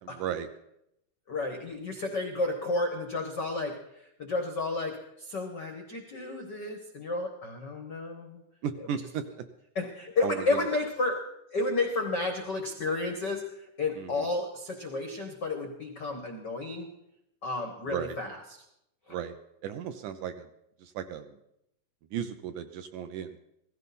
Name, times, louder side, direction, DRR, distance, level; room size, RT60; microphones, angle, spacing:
voice 1, 0.0-0.5 8.6-9.5 10.2-10.6 14.0-14.3 17.9-18.2 19.1-19.4 19.6-20.5 20.8-21.4 22.1-23.4, right 8 dB, 75° right, 9 dB, 1.9 m, -35 dB
voice 2, 1.3-8.4 9.7-11.2 11.5-16.9 17.4-18.6 19.1-19.2, left 2 dB, 80° left, 4 dB, 0.9 m, -32 dB
16.5 x 15.0 x 4.2 m, 0.81 s
omnidirectional pair, 4.0 m